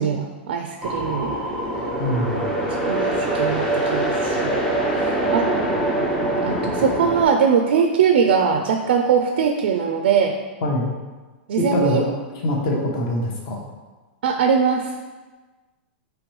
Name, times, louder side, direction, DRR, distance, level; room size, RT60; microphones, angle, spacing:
voice 1, 0.0-1.4 2.7-5.5 6.4-10.3 11.5-12.0 14.2-14.9, right 6 dB, 60° right, 4 dB, 0.4 m, -21 dB
sound 1, 0.8-7.2, right 1 dB, 5° left, 0.4 m, -23 dB
voice 2, 2.0-2.5 10.6-11.0 11.6-12.2 12.4-13.6, left 1 dB, 35° left, -1 dB, 0.8 m, -23 dB
5.2 x 3.1 x 3.1 m, 1.3 s
supercardioid pair, 175°, 6 cm